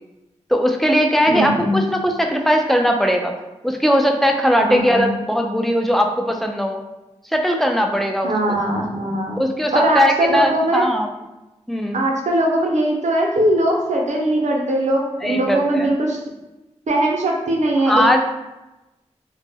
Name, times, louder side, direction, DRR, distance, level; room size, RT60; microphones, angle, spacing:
voice 1, 0.5-3.3 3.6-6.8 7.3-8.3 9.4-11.1 11.7-12.0 15.2-15.9 17.9-18.2, equal, ahead, 3 dB, 0.4 m, -19 dB
voice 2, 1.3-1.9 4.6-5.1 8.2-9.4 9.7-10.9 11.9-16.2 16.9-18.2, right 1 dB, 75° right, 0 dB, 0.5 m, -20 dB
2.1 x 2.0 x 3.3 m, 1.0 s
cardioid pair, 45°, 12 cm